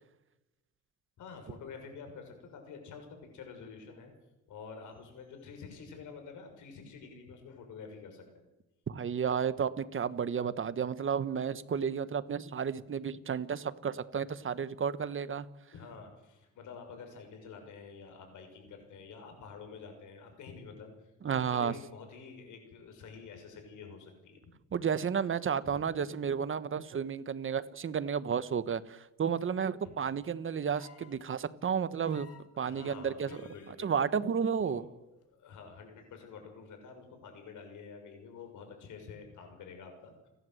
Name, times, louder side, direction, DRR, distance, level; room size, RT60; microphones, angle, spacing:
voice 1, 1.2-4.1 4.5-8.4 15.7-24.4 25.6-25.8 29.8-29.9 32.6-33.9 34.6-34.8 35.3-40.3, left 5 dB, 80° left, 5 dB, 6.5 m, -48 dB
voice 2, 8.9-15.5 21.2-21.7 24.7-32.3 32.6-33.3 33.8-34.8, right 7 dB, 40° right, 14 dB, 1.4 m, -32 dB
sound 1, 30.7-31.2 32.0-32.5 33.3-33.7 35.2-35.3, left 8 dB, 50° left, 2.8 m, -56 dB
30.0 x 11.5 x 7.9 m, 0.97 s
cardioid pair, 90°, 30 cm